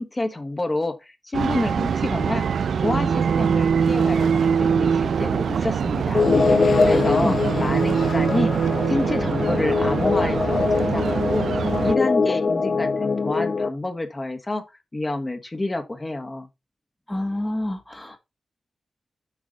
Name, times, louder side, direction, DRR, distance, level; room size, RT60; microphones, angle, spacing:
voice 1, 0.0-2.5 2.8-14.6 14.9-16.5, left 2 dB, 30° left, 1.6 m, -28 dB
sound 1, 1.3-11.9, right 6 dB, 80° right, 0.4 m, -23 dB
sound 2, 6.1-13.7, left 4 dB, 65° left, 0.8 m, -22 dB
voice 2, 6.9-7.4 17.1-18.2, left 1 dB, 15° left, 1.4 m, -28 dB
8.2 x 4.7 x 3.9 m
supercardioid pair, 40°, 0 cm